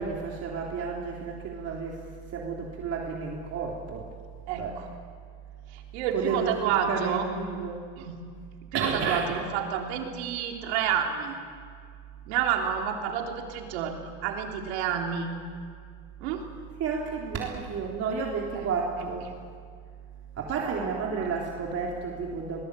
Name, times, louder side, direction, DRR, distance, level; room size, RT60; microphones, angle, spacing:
voice 1, 0.0-2.0 2.3-4.1 4.6-4.7 6.1-6.5 6.9-7.7 8.7-9.3 16.8-19.3 20.4-22.6, right 5 dB, 50° right, -2 dB, 3.6 m, -31 dB
voice 2, 4.5-4.9 5.7-7.3 8.0-8.2 8.6-11.4 12.3-15.3 16.2-16.5 17.4-17.5 18.6-18.7 20.6-21.3, right 8 dB, 85° right, 2 dB, 3.5 m, -30 dB
22.0 x 20.5 x 8.3 m, 2.1 s
supercardioid pair, 100°, 32 cm